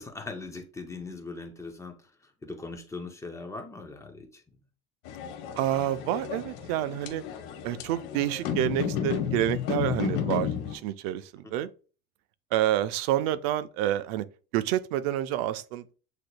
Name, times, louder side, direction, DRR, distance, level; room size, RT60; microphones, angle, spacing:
voice 1, 0.0-2.0 2.4-4.4, left 3 dB, 10° left, 0.5 m, -40 dB
sound 1, 5.0-10.7, left 8 dB, 70° left, 1.1 m, -32 dB
voice 2, 5.6-7.2 7.6-11.7 12.5-14.3 14.5-15.9, right 13 dB, 80° right, 0.5 m, -28 dB
7.9 x 2.9 x 2.2 m
cardioid pair, 150°, 31 cm